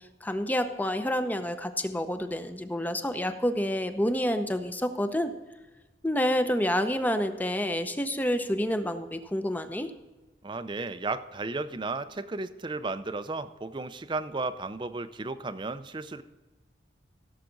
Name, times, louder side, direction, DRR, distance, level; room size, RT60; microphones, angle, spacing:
voice 1, 0.2-5.3 6.0-9.9, equal, 10° left, 9 dB, 0.7 m, -28 dB
voice 2, 10.4-16.2, right 3 dB, 25° right, 12 dB, 0.5 m, -34 dB
16.0 x 7.4 x 4.0 m, 1.2 s
head